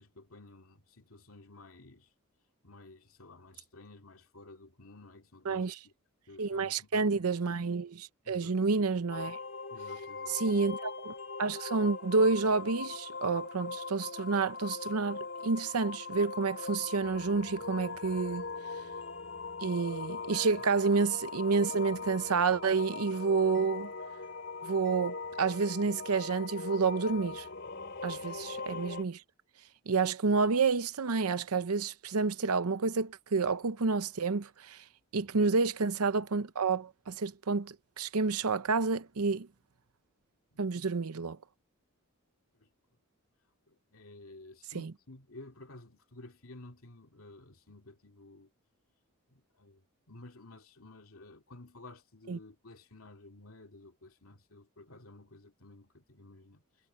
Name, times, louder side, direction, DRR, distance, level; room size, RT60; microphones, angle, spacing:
voice 1, 0.0-2.1 2.6-5.9 6.3-7.2 8.2-8.6 9.7-10.7 35.1-35.3 40.5-40.6 42.6-42.7 43.7-48.5 49.3-56.6, left 2 dB, 70° left, 2.5 m, -53 dB
voice 2, 6.4-9.4 10.3-18.4 19.6-23.9 24.6-27.5 28.0-29.2 29.9-34.8 35.1-39.5 40.6-41.4 44.7-44.9 52.3-52.4, right 4 dB, 85° right, 0.7 m, -29 dB
sound 1, 9.1-29.0, left 4 dB, 55° left, 3.5 m, -40 dB
head